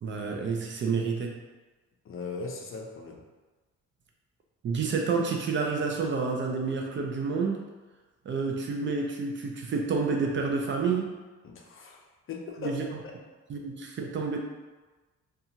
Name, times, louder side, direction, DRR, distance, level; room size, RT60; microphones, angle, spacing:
voice 1, 0.0-1.4 4.6-7.6 8.3-11.2 12.6-12.8 13.5-14.4, right 4 dB, 40° right, 1 dB, 0.4 m, -29 dB
voice 2, 2.1-3.2 11.4-13.1, left 4 dB, 45° left, 1 dB, 0.5 m, -39 dB
2.7 x 2.4 x 2.7 m, 1.2 s
cardioid pair, 90°, 30 cm